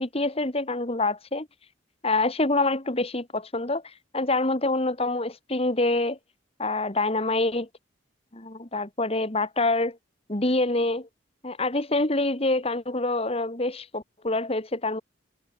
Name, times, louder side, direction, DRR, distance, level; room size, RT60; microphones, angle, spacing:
voice 1, 0.0-1.5 2.0-3.8 4.1-6.2 6.6-7.7 8.3-10.0 10.3-11.1 11.4-15.0, left 2 dB, 30° left, 2.1 m, -26 dB
head